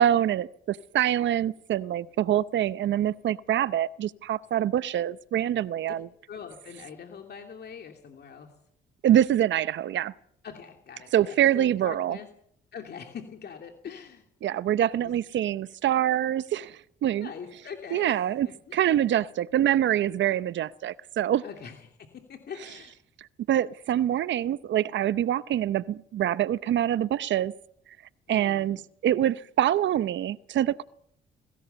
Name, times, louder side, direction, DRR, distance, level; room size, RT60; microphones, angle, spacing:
voice 1, 0.0-6.1 9.0-10.1 11.1-12.2 14.4-17.3 17.9-18.5 18.7-21.4 23.5-27.5 28.3-28.8 29.0-30.8, right 11 dB, 65° right, 0.7 m, -25 dB
voice 2, 6.3-8.5 10.4-12.3 12.7-14.3 14.9-15.1 17.2-18.8 21.4-22.9 28.3-28.8, left 7 dB, 55° left, 2.7 m, -43 dB
22.0 x 17.5 x 7.0 m
cardioid pair, 90°, 20 cm